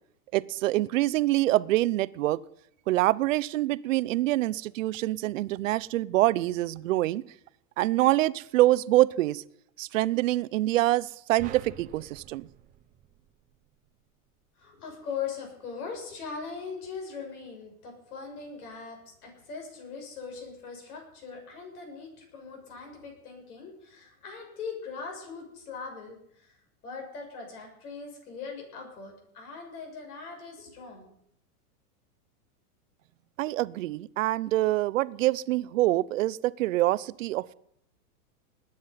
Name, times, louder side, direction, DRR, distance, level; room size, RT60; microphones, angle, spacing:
voice 1, 0.3-2.4 2.9-7.2 7.8-9.4 9.8-12.5 33.4-37.5, right 16 dB, 55° right, 19 dB, 0.7 m, -25 dB
sound 1, 11.4-13.8, right 10 dB, 20° right, 0.7 m, -46 dB
voice 2, 14.6-26.6 26.8-31.1, left 5 dB, 70° left, 2 dB, 7.3 m, -40 dB
20.0 x 9.5 x 5.6 m, 0.72 s
supercardioid pair, 160°, 46 cm